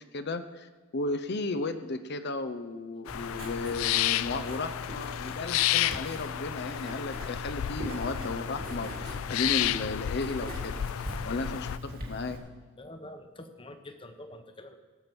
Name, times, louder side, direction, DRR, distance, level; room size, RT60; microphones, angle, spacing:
voice 1, 0.0-10.7 11.2-12.4, left 2 dB, 55° left, 9 dB, 0.7 m, -34 dB
sound 1, 3.1-11.8, left 12 dB, 80° left, 0.4 m, -32 dB
Writing, 3.1-12.4, left 1 dB, 45° right, 2.3 m, -40 dB
voice 2, 12.8-14.8, left 1 dB, 25° left, 7 dB, 1.0 m, -46 dB
17.5 x 7.3 x 6.1 m, 1.3 s
head